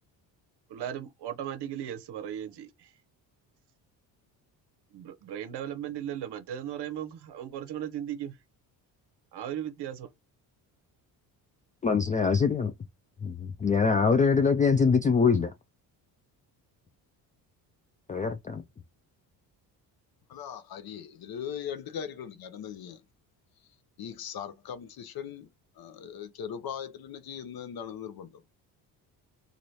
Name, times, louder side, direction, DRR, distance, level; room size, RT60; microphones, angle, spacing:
voice 1, 0.7-2.9 4.9-8.3 9.3-10.1, right 10 dB, 55° right, 0.8 m, -37 dB
voice 2, 11.8-12.7 13.2-15.5 18.1-18.6, left 5 dB, 20° left, 0.3 m, -24 dB
voice 3, 20.3-23.0 24.0-25.5 25.8-28.4, left 8 dB, 50° left, 0.7 m, -39 dB
3.0 x 2.6 x 2.7 m
hypercardioid pair, 60°, 48 cm